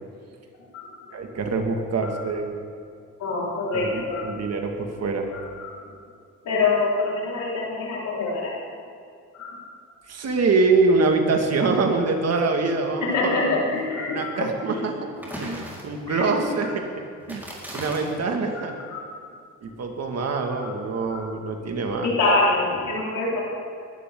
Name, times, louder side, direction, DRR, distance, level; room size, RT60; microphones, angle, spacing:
voice 1, 1.1-2.6 3.7-5.3 10.1-13.6 14.1-15.1 15.4-16.9 17.3-18.7 19.6-22.1, right 3 dB, 55° right, 3 dB, 2.1 m, -24 dB
voice 2, 3.2-4.4 5.3-5.8 6.4-8.5 9.3-9.6 13.0-14.9 16.1-16.3 16.6-16.7 18.5-19.0 20.4-20.7 21.1-21.2 22.0-23.4, left 3 dB, 85° left, -5 dB, 4.6 m, -26 dB
sound 1, 15.2-16.2 17.2-18.2, equal, 5° right, 4.3 m, -37 dB
21.0 x 12.0 x 3.8 m, 2.3 s
cardioid pair, 90°, 30 cm